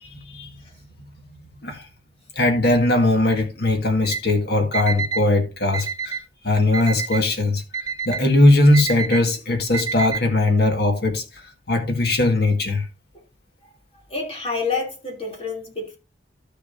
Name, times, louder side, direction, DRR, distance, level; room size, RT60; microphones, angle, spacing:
voice 1, 0.0-0.5 1.6-1.9 2.4-6.2 6.4-7.6 8.1-11.2 11.7-12.9, left 2 dB, 60° left, 1.9 m, -19 dB
Alarm, 4.0-4.2 4.7-5.2 5.7-6.2 6.7-7.2 7.7-8.2 8.7-9.2 9.7-10.2, right 5 dB, 25° right, 1.0 m, -27 dB
voice 2, 14.1-16.0, left 4 dB, 35° left, 3.1 m, -28 dB
13.0 x 6.8 x 2.7 m
head